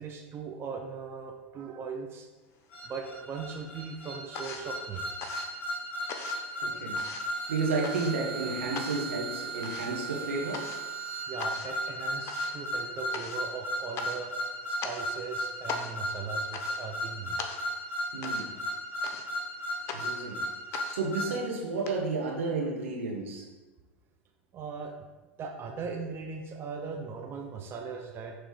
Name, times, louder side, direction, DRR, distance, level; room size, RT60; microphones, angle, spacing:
voice 1, 0.0-2.3 2.8-5.0 6.7-7.4 11.3-14.3 14.7-17.5 24.5-24.9 25.4-28.4, right 5 dB, 35° right, 2 dB, 0.7 m, -39 dB
sound 1, 2.6-3.4 3.6-21.9, left 5 dB, 45° left, 0.7 m, -42 dB
sound 2, 2.7-21.4, equal, 25° left, 1.8 m, -35 dB
voice 2, 6.6-7.0 7.5-10.7 18.1-18.5 19.9-20.4 20.9-23.5, right 3 dB, 80° right, 0 dB, 1.3 m, -32 dB
6.1 x 3.2 x 4.8 m, 1.1 s
hypercardioid pair, 95°, 7 cm